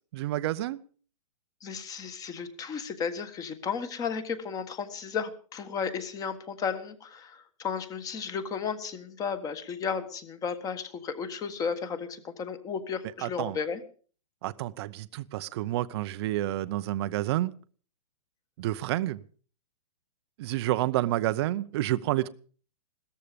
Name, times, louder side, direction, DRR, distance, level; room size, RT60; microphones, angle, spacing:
voice 1, 0.1-0.8 13.2-13.6 14.4-17.5 18.6-19.2 20.4-22.3, right 15 dB, 40° right, 0.7 m, -29 dB
voice 2, 1.6-13.8, left 6 dB, 20° left, 1.6 m, -34 dB
17.5 x 14.0 x 5.2 m
hypercardioid pair, 150°, 20 cm